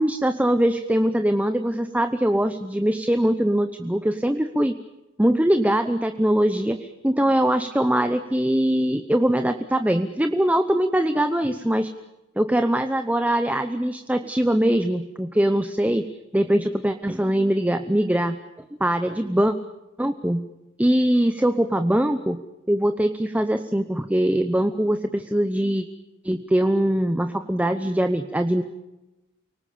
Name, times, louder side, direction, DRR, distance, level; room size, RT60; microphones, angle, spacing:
voice 1, 0.0-4.8 5.2-11.9 12.4-16.1 16.3-18.4 18.8-19.5 20.0-20.5 20.8-22.4 22.7-25.9 26.2-28.6, right 1 dB, 5° right, 8 dB, 0.8 m, -22 dB
29.5 x 19.0 x 8.6 m, 1.0 s
head